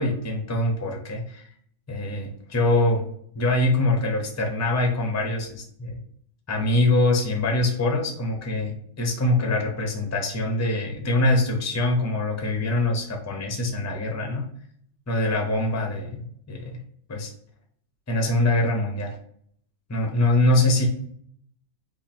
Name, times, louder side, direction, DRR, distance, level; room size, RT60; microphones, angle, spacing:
voice 1, 0.0-1.4 1.9-3.0 3.3-6.0 6.5-14.4 15.1-16.8 17.1-17.3 18.1-19.2 19.9-20.9, left 2 dB, 25° left, 1 dB, 0.4 m, -24 dB
4.0 x 3.1 x 4.3 m, 0.64 s
omnidirectional pair, 1.9 m